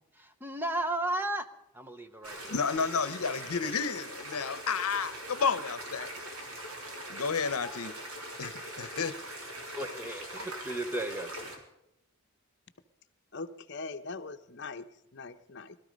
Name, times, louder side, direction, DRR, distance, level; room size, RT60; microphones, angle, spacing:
voice 1, 0.0-1.5 1.7-2.6 3.2-3.3 9.8-11.5, right 1 dB, 10° right, 8 dB, 0.7 m, -35 dB
sound 1, 2.2-11.6, right 1 dB, 75° right, 3.3 m, -42 dB
voice 2, 2.4-6.1 7.1-8.0 8.4-9.2, left 5 dB, 80° left, 15 dB, 0.8 m, -31 dB
voice 3, 13.3-15.8, left 3 dB, 50° left, 9 dB, 0.9 m, -42 dB
20.5 x 13.0 x 5.2 m, 0.84 s
head